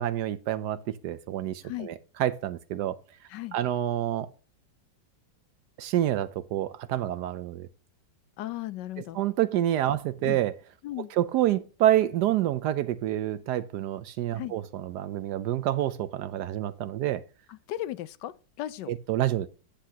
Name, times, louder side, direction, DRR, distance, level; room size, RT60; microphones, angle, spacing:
voice 1, 0.0-3.0 3.5-4.3 5.8-7.7 9.0-10.6 11.0-17.2 18.9-19.5, right 12 dB, 75° right, 1.0 m, -28 dB
voice 2, 8.4-9.2 10.2-10.4 10.8-11.1 14.3-14.6 17.5-18.3 18.6-18.9, left 14 dB, 75° left, 1.2 m, -36 dB
10.0 x 7.8 x 2.8 m
omnidirectional pair, 2.0 m